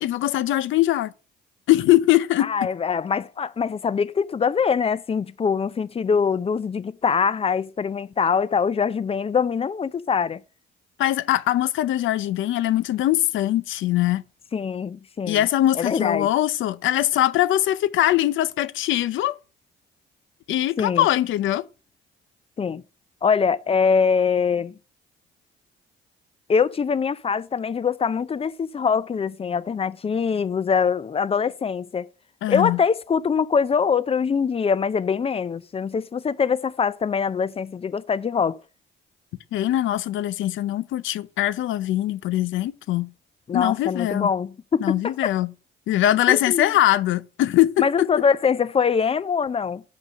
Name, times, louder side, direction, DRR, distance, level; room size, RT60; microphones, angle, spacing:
voice 1, 0.0-1.1 1.7-2.5 11.0-14.2 15.3-19.4 20.5-21.7 32.4-32.8 39.5-43.1 43.5-44.3 44.8-45.5 45.9-48.1, left 14 dB, 80° left, 0.6 m, -22 dB
voice 2, 2.4-10.4 14.5-15.5 15.7-16.3 20.8-21.1 22.6-22.8 23.2-24.7 26.5-32.1 32.5-38.6 43.5-45.1 46.3-46.7 47.8-49.8, left 6 dB, 30° left, 0.4 m, -23 dB
5.3 x 5.0 x 6.3 m
cardioid pair, 90°, 20 cm